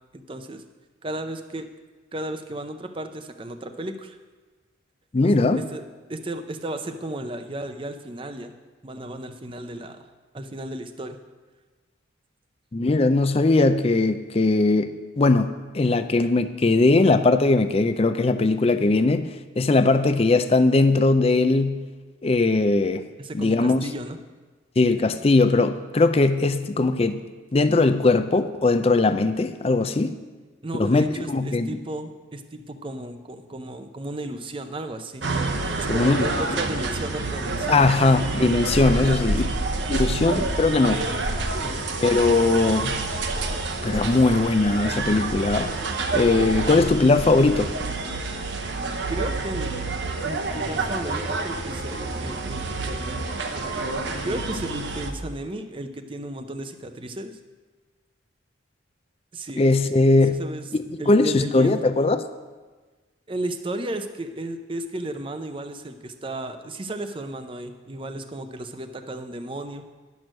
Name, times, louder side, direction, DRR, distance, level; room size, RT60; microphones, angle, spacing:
voice 1, 0.1-0.6 1.0-1.7 2.1-4.2 5.2-5.8 6.1-8.5 8.8-10.1 10.3-11.2 23.2-24.2 30.6-35.2 35.8-37.9 38.8-39.6 39.9-40.2 41.6-41.8 49.1-49.7 50.2-53.2 54.2-57.4 59.3-59.6 60.4-60.6 61.0-61.9 63.3-69.8, right 1 dB, 25° right, 8 dB, 0.6 m, -34 dB
voice 2, 5.1-5.6 12.7-21.8 22.2-23.1 23.3-23.8 24.8-27.2 27.5-30.2 30.7-31.8 35.9-36.3 37.7-39.4 39.9-41.2 42.0-42.9 43.8-45.8 46.1-47.7 59.6-60.4 61.1-62.2, left 3 dB, 30° left, 10 dB, 0.4 m, -20 dB
sound 1, 35.2-55.1, right 3 dB, 60° right, 0.8 m, -28 dB
10.5 x 6.3 x 6.3 m, 1.3 s
head